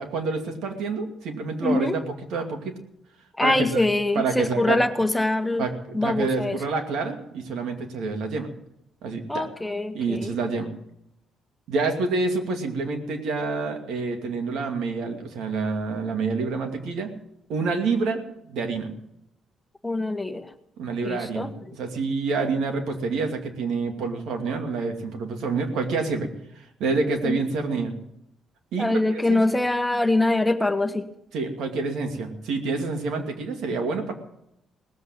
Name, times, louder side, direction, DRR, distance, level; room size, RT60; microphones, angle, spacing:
voice 1, 0.0-2.8 3.4-3.9 4.1-4.8 5.6-8.5 9.0-9.5 9.9-10.7 11.7-17.1 17.5-18.2 18.5-18.9 20.8-26.3 26.6-27.9 28.7-29.4 31.3-34.1, right 4 dB, 80° right, 5 dB, 2.4 m, -28 dB
voice 2, 1.6-2.0 3.4-5.7 5.9-6.6 9.3-10.4 19.8-20.5 21.0-21.5 27.2-27.4 28.8-31.1, left 2 dB, 10° left, 8 dB, 1.3 m, -24 dB
19.0 x 8.0 x 8.9 m, 0.81 s
cardioid pair, 90°, 0 cm